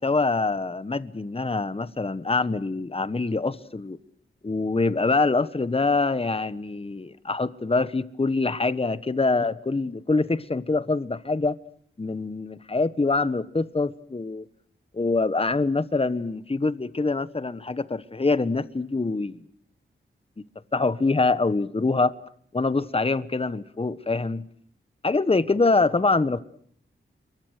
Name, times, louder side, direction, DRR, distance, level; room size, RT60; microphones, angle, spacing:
voice 1, 0.0-4.0 4.4-11.6 12.0-14.5 14.9-19.4 20.7-22.1 22.5-24.4 25.0-26.4, left 3 dB, 25° left, 1.2 m, -25 dB
28.0 x 23.0 x 6.7 m
cardioid pair, 55°, 21 cm